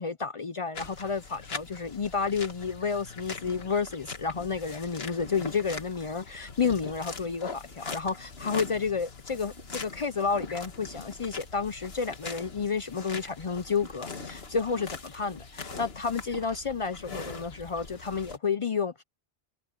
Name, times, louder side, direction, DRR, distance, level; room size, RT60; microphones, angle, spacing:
voice 1, 0.0-19.0, left 5 dB, 45° left, 0.4 m, -31 dB
sound 1, 0.7-18.4, left 4 dB, 70° left, 1.9 m, -42 dB
omnidirectional pair, 1.1 m